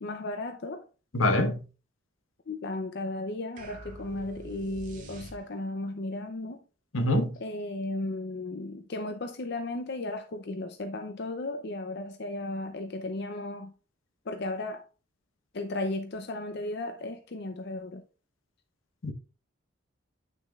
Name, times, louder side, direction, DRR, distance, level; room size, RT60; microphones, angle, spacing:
voice 1, 0.0-0.8 2.5-6.6 7.4-13.7 14.3-14.8 15.5-18.0, left 2 dB, 55° left, 0.6 m, -35 dB
voice 2, 1.1-1.6 6.9-7.4 19.0-19.1, left 1 dB, 85° left, 1.0 m, -25 dB
sound 1, 3.6-5.8, right 1 dB, 40° right, 1.9 m, -45 dB
8.6 x 6.3 x 2.4 m
head